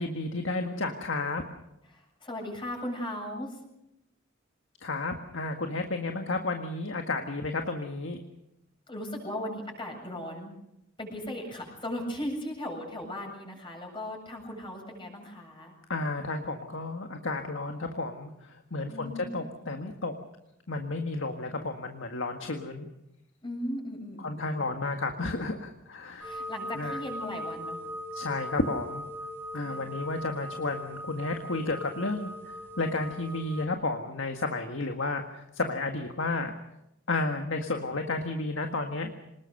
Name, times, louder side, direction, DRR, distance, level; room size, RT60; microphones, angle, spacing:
voice 1, 0.0-1.4 4.8-8.2 15.9-20.1 20.7-22.9 24.2-26.4 26.7-27.0 28.1-29.0 29.5-32.3 32.8-36.5 37.1-39.1, left 2 dB, 70° left, 4 dB, 1.8 m, -32 dB
voice 2, 1.9-3.6 8.9-10.6 11.0-15.8 18.9-19.4 23.4-24.8 26.2-27.9 29.5-29.9, left 1 dB, 25° left, 2 dB, 7.7 m, -37 dB
sound 1, 26.2-33.7, equal, 10° left, 5.2 m, -40 dB
25.5 x 20.5 x 6.6 m, 0.85 s
head